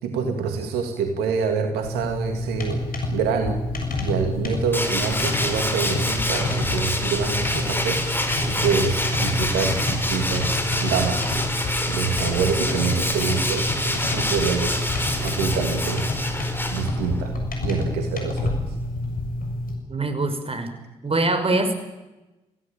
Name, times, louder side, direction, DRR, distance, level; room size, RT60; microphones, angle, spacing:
voice 1, 0.0-3.6 4.0-8.0 8.5-11.4 11.9-14.8 15.2-16.1 16.7-18.6, right 6 dB, 85° right, 5 dB, 2.3 m, -26 dB
sound 1, 1.8-19.7, left 2 dB, 60° left, 6.8 m, -28 dB
Tools, 4.7-17.2, left 1 dB, 15° left, 5.9 m, -27 dB
voice 2, 19.9-20.8 21.0-21.7, right 2 dB, 35° right, 8 dB, 5.7 m, -23 dB
26.0 x 17.0 x 8.9 m, 1.1 s
hypercardioid pair, 45°, 16 cm